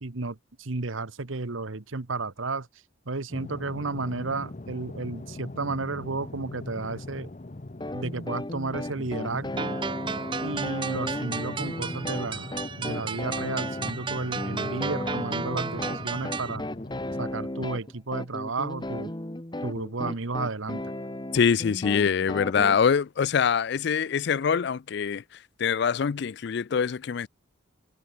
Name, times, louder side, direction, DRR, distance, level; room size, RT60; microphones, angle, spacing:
voice 1, 0.0-2.7 3.1-7.3 7.9-9.7 10.4-12.5 12.8-16.6 17.2-19.1 19.6-20.8, right 3 dB, 80° right, 1.2 m, -32 dB
sound 1, 3.3-17.2, left 2 dB, 35° left, 0.8 m, -41 dB
sound 2, 7.8-22.8, left 1 dB, 20° left, 1.2 m, -35 dB
sound 3, 9.6-16.6, right 5 dB, 25° right, 0.5 m, -34 dB
voice 2, 21.3-25.2 25.6-27.3, left 6 dB, 55° left, 0.4 m, -24 dB
head